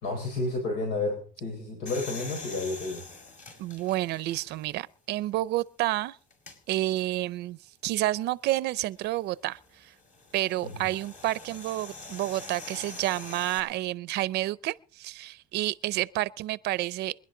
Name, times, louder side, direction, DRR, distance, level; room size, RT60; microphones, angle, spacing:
voice 1, 0.0-3.0 10.6-10.9, left 2 dB, 90° left, 4.1 m, -31 dB
sound 1, 1.9-4.8 5.3-5.4 6.3-6.6 8.7-13.6, left 3 dB, 45° left, 5.3 m, -44 dB
voice 2, 3.6-6.2 6.7-9.9 10.3-17.1, right 16 dB, 80° right, 0.6 m, -30 dB
27.0 x 10.5 x 3.8 m
cardioid pair, 110°, 17 cm